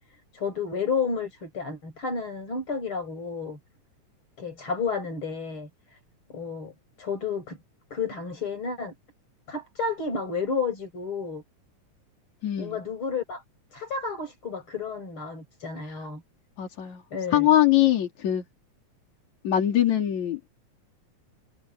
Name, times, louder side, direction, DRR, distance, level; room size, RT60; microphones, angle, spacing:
voice 1, 0.3-3.6 4.4-5.7 6.3-6.7 7.0-7.6 7.9-8.9 9.5-11.4 12.6-13.4 13.7-16.2 17.1-17.5, left 5 dB, 40° left, 6.5 m, -31 dB
voice 2, 12.4-12.8 15.8-16.1 16.6-17.0 17.3-18.4 19.4-20.4, left 12 dB, 70° left, 4.2 m, -22 dB
omnidirectional pair, 3.4 m